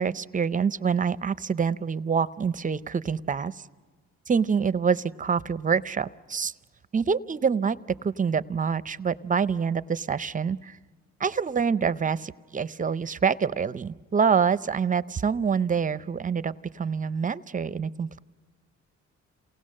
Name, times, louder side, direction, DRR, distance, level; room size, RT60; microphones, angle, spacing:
voice 1, 0.0-3.7 4.3-6.5 6.9-10.8 11.2-18.2, right 6 dB, 25° right, 16 dB, 0.6 m, -26 dB
28.0 x 18.5 x 6.5 m, 1.4 s
cardioid pair, 90°, 30 cm